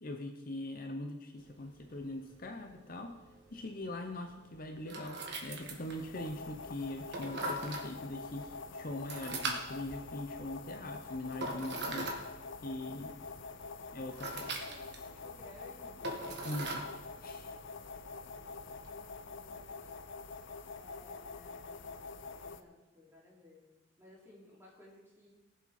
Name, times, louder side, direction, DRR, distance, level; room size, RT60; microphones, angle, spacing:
voice 1, 0.0-3.2 3.5-12.1 12.6-13.2 13.9-14.5 16.4-16.9 17.2-17.6, left 1 dB, 45° left, 5 dB, 0.9 m, -42 dB
sound 1, 1.4-18.9, right 2 dB, 55° right, 1.7 m, -43 dB
sound 2, 5.2-22.6, left 4 dB, 70° left, 0.6 m, -46 dB
voice 2, 14.1-16.2 18.9-20.0 20.4-25.3, left 2 dB, 15° right, -5 dB, 3.3 m, -59 dB
19.0 x 7.3 x 4.3 m, 1.1 s
head